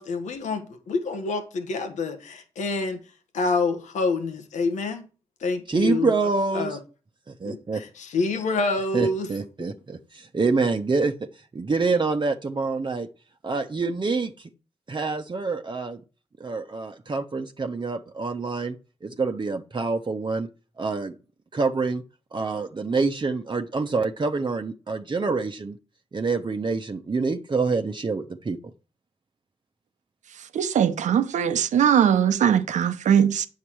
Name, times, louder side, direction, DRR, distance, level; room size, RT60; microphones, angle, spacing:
voice 1, 0.0-3.0 3.3-5.0 5.4-6.1 6.5-6.8 7.4-9.3, left 3 dB, 90° left, 1.3 m, -27 dB
voice 2, 5.7-6.8 7.3-7.8 8.9-13.1 13.4-14.5 14.9-16.0 16.4-18.8 19.0-20.5 20.8-21.2 21.5-22.0 22.3-25.8 26.1-28.6, right 4 dB, 40° right, 0.9 m, -26 dB
voice 3, 30.5-33.5, right 8 dB, 85° right, 0.8 m, -20 dB
8.5 x 6.6 x 4.6 m
cardioid pair, 50°, 12 cm